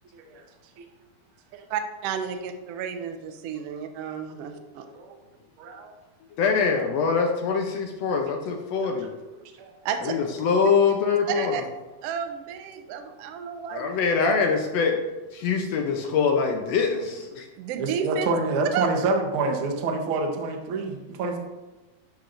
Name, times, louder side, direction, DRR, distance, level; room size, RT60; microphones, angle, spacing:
voice 1, 1.7-4.8 9.8-10.1 11.3-11.6 12.0-14.3 17.6-18.3 18.7-18.9, right 7 dB, 80° right, 7 dB, 1.4 m, -31 dB
voice 2, 5.6-5.9 8.8-8.9 9.6-9.7 17.7-21.4, right 3 dB, 65° right, 2 dB, 1.4 m, -27 dB
voice 3, 6.4-9.1 10.0-11.6 13.7-15.0 15.3-17.5, left 5 dB, 75° left, 3 dB, 1.6 m, -24 dB
11.5 x 5.1 x 2.5 m, 1.1 s
omnidirectional pair, 3.5 m